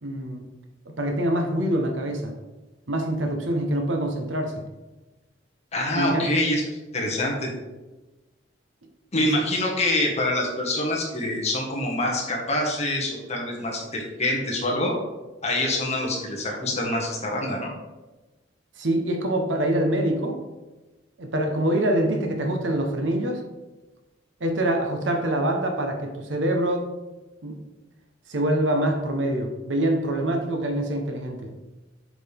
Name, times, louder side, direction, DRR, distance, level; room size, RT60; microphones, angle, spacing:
voice 1, 0.0-0.4 0.9-2.3 2.9-4.6 5.9-6.3 9.2-9.3 18.8-20.4 21.2-23.4 24.4-26.9 27.4-27.6 28.3-31.5, right 1 dB, 90° right, 4 dB, 1.1 m, -25 dB
voice 2, 5.7-6.6 6.9-7.5 9.1-14.9 15.4-17.7, left 1 dB, 35° left, -1 dB, 1.6 m, -25 dB
7.4 x 5.0 x 3.6 m, 1.1 s
head